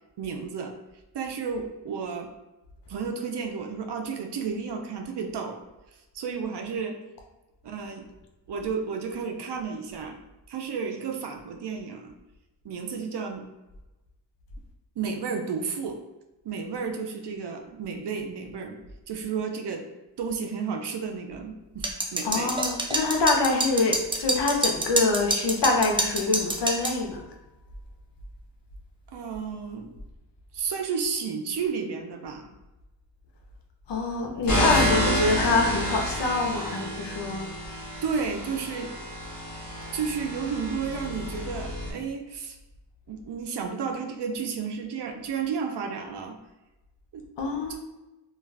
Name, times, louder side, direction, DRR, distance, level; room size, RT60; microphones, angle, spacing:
voice 1, 0.2-0.8 1.1-2.3 2.9-5.6 6.1-7.0 7.6-8.1 8.5-10.2 10.5-12.1 12.6-13.5 15.0-16.0 16.4-18.8 19.1-19.9 20.2-22.5 29.1-29.9 30.5-32.5 34.5-34.7 35.0-35.3 38.0-38.9 39.9-42.6 43.1-46.4 47.1-47.3 47.7-47.8, right 5 dB, 65° right, 5 dB, 0.5 m, -32 dB
sound 1, 21.8-27.0, right 2 dB, 10° right, 0.3 m, -27 dB
voice 2, 22.2-27.2 33.9-37.5 47.4-47.8, left 3 dB, 65° left, 1 dB, 0.7 m, -25 dB
sound 2, 34.5-41.9, equal, 45° left, 1.0 m, -30 dB
2.4 x 2.3 x 3.2 m, 1.0 s
cardioid pair, 75°, 45 cm